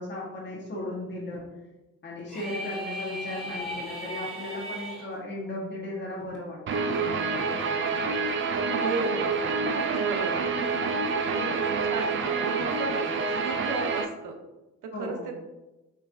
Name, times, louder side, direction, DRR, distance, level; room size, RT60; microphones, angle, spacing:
voice 1, 0.0-1.4 2.0-6.6 6.9-7.9 14.9-15.3, left 1 dB, 35° left, -3 dB, 1.3 m, -36 dB
sound 1, 2.3-5.1, equal, ahead, 1.3 m, -36 dB
Guitar, 6.7-14.0, right 4 dB, 40° right, 0.5 m, -27 dB
voice 2, 8.6-9.4 9.7-10.6 11.2-14.3 14.8-15.3, right 3 dB, 85° right, 5 dB, 0.7 m, -35 dB
4.4 x 3.2 x 2.5 m, 1.0 s
cardioid pair, 90°, 30 cm